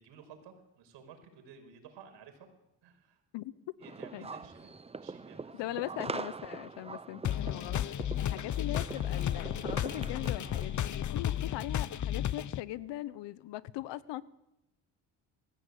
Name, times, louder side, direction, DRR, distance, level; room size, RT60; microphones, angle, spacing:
voice 1, 0.0-2.5 2.8-3.2 3.8-4.7 5.0-5.8 8.4-8.5, right 7 dB, 80° right, 5.5 m, -54 dB
sound 1, 3.8-10.9, right 4 dB, 15° right, 0.7 m, -43 dB
voice 2, 5.5-14.2, left 15 dB, 75° left, 1.0 m, -40 dB
sound 2, 7.2-12.6, left 10 dB, 45° left, 0.8 m, -33 dB
22.0 x 16.0 x 8.4 m
cardioid pair, 85°, 43 cm